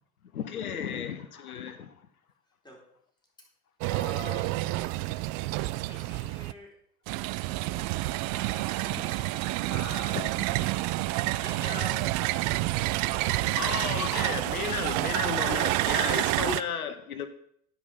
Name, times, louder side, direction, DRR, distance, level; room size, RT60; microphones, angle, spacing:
voice 1, 0.3-1.9 9.0-9.1 10.6-10.7 13.6-17.3, left 7 dB, 85° left, 11 dB, 0.7 m, -34 dB
sound 1, 3.8-6.5 7.1-16.6, right 18 dB, 45° right, 0.4 m, -29 dB
voice 2, 3.9-4.5 5.9-6.7 7.6-10.3 11.3-12.2 13.0-14.4 15.6-15.8 16.2-16.7, left 1 dB, 10° left, -1 dB, 3.9 m, -45 dB
11.0 x 5.1 x 5.6 m, 0.67 s
figure-of-eight pair, 70°, 42 cm